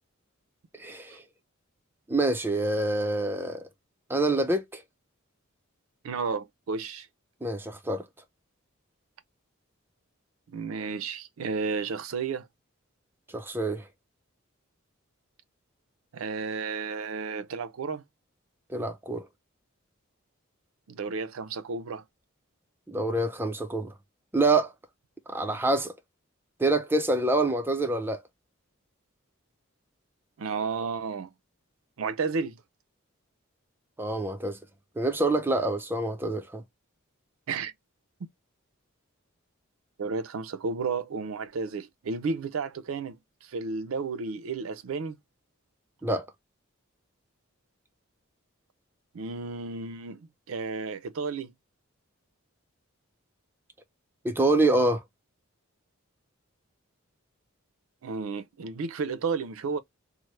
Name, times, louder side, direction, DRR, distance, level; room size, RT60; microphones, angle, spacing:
voice 1, 0.8-1.2 2.1-3.7 4.1-4.8 7.4-8.0 13.3-13.8 18.7-19.3 22.9-23.9 24.3-24.7 25.3-25.9 26.6-28.2 34.0-34.6 35.0-36.6 46.0-46.2 54.2-55.0, right 2 dB, 10° right, 0.4 m, -26 dB
voice 2, 6.0-7.1 10.5-12.5 16.1-18.0 20.9-22.0 30.4-31.3 32.0-32.6 37.5-37.7 38.2-38.3 40.0-43.2 43.5-45.2 49.1-51.5 58.0-59.8, right 4 dB, 75° right, 0.4 m, -32 dB
3.1 x 2.0 x 3.1 m
head